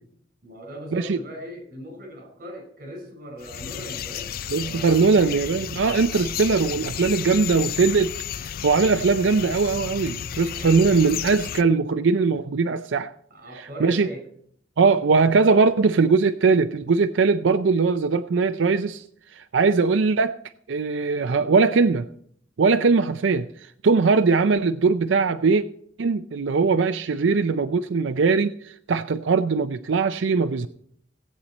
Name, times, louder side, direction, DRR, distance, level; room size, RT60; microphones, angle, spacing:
voice 1, 0.4-5.1 10.5-11.1 13.3-14.3, equal, 50° right, 4.9 m, -39 dB
sound 1, 3.4-11.6, left 9 dB, 50° left, 0.4 m, -33 dB
voice 2, 4.5-13.1 13.8-14.1 14.8-19.0 19.3-20.4 20.7-22.1 22.6-25.6 26.0-30.7, right 4 dB, 90° right, 0.5 m, -20 dB
17.0 x 8.7 x 4.2 m
head